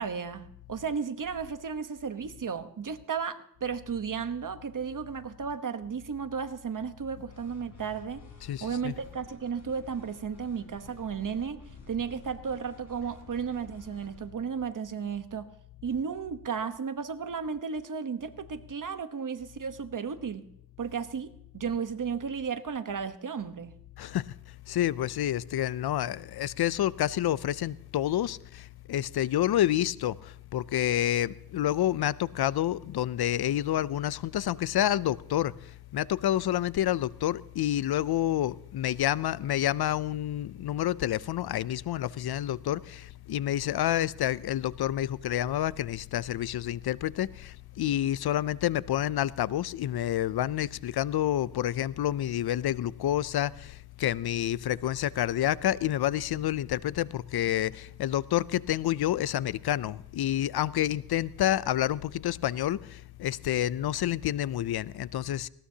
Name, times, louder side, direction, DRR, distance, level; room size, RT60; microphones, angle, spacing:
voice 1, 0.0-8.2 8.6-11.6 11.9-15.5 15.8-20.5 20.8-23.7, right 6 dB, 55° right, 1.1 m, -34 dB
sound 1, 7.3-14.3, left 2 dB, 45° left, 4.2 m, -52 dB
voice 2, 8.4-8.9 24.0-24.4 24.7-65.5, left 12 dB, 80° left, 0.5 m, -29 dB
19.0 x 17.0 x 2.8 m
cardioid pair, 75°, 38 cm